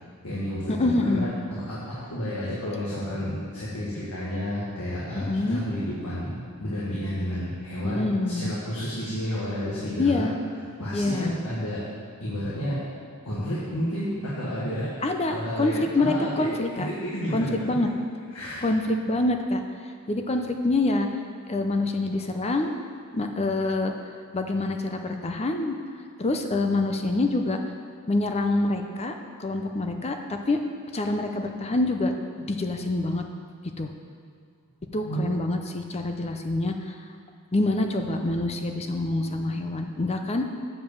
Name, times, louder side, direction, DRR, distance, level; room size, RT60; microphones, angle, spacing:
voice 1, 0.2-10.3 10.8-11.9 12.2-12.8 13.2-16.5 16.7-17.6 18.3-18.7 34.9-35.4, equal, 85° left, -8 dB, 1.7 m, -31 dB
voice 2, 0.8-1.3 5.1-5.6 7.8-8.5 10.0-10.3 10.9-11.3 15.0-16.9 17.3-17.9 18.6-19.6 20.1-21.1 21.5-22.7 23.1-23.9 24.3-25.7 26.2-27.6 28.1-30.6 30.9-33.2 33.8-33.9 34.9-37.0 37.5-40.5, left 2 dB, 30° left, 5 dB, 0.5 m, -26 dB
7.5 x 4.9 x 7.1 m, 2.1 s
head